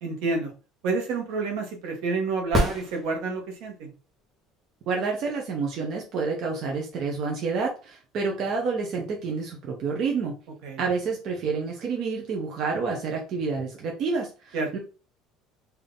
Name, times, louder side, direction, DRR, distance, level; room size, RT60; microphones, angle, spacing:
voice 1, 0.0-0.5 0.8-3.9 10.6-10.8 14.5-14.7, right 3 dB, 70° right, 2 dB, 1.4 m, -29 dB
sound 1, 2.5-3.7 7.5-7.6, equal, 20° right, 1.1 m, -27 dB
voice 2, 4.9-10.3 10.8-14.8, right 4 dB, 45° right, 0 dB, 0.8 m, -29 dB
3.5 x 2.7 x 3.8 m, 0.34 s
cardioid pair, 155°, 0 cm